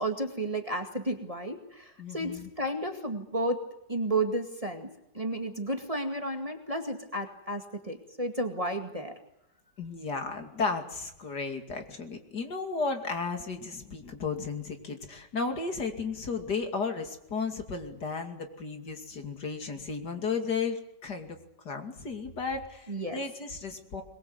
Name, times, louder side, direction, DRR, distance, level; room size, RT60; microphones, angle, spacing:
voice 1, 0.0-3.6 3.9-9.2 22.9-23.2, right 1 dB, 20° right, 4 dB, 2.1 m, -32 dB
voice 2, 2.0-2.5 9.8-21.4 21.6-24.0, left 4 dB, 65° left, 5 dB, 3.1 m, -34 dB
22.5 x 22.0 x 8.0 m, 0.83 s
omnidirectional pair, 1.9 m